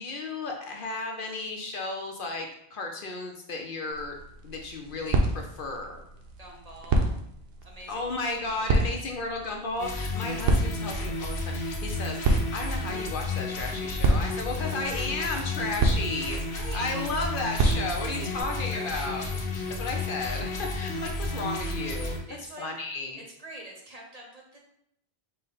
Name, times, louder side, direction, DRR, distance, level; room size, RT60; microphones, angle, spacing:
voice 1, 0.0-4.2 4.4-6.0 7.9-16.4 16.7-19.2 19.8-22.2 22.6-23.2, left 3 dB, 60° left, 2 dB, 0.7 m, -34 dB
sound 1, 3.9-18.4, right 2 dB, 70° right, 0.8 m, -30 dB
voice 2, 6.4-7.1 7.6-8.9 14.6-15.0 16.3-17.0 18.0-19.4 22.3-22.7 23.2-24.6, right 2 dB, 40° right, 0 dB, 0.7 m, -45 dB
sound 2, 9.8-22.2, left 2 dB, 75° left, 1.0 m, -32 dB
5.4 x 2.1 x 3.8 m, 0.75 s
omnidirectional pair, 1.1 m